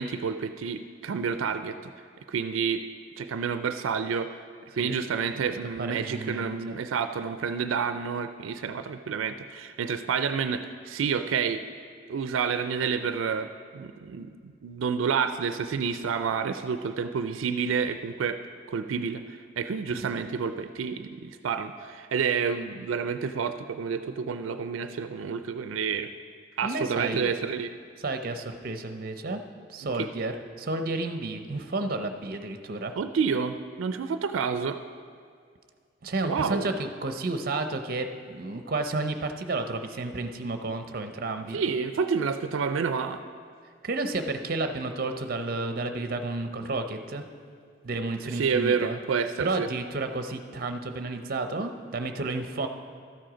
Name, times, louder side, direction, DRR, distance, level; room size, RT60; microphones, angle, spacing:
voice 1, 0.0-1.9 2.3-2.8 3.2-4.3 4.7-11.6 12.1-13.5 13.7-18.4 18.7-26.1 26.6-27.7 30.0-30.1 33.0-34.8 36.2-36.7 41.5-43.2 48.3-49.7, right 6 dB, 85° right, 9 dB, 0.4 m, -29 dB
voice 2, 5.8-6.8 19.9-20.1 26.6-27.3 28.0-29.4 29.7-32.9 36.0-41.6 43.8-47.2 47.8-49.0 49.4-52.7, right 2 dB, 50° right, 7 dB, 0.6 m, -31 dB
12.5 x 7.7 x 5.0 m, 2.1 s
head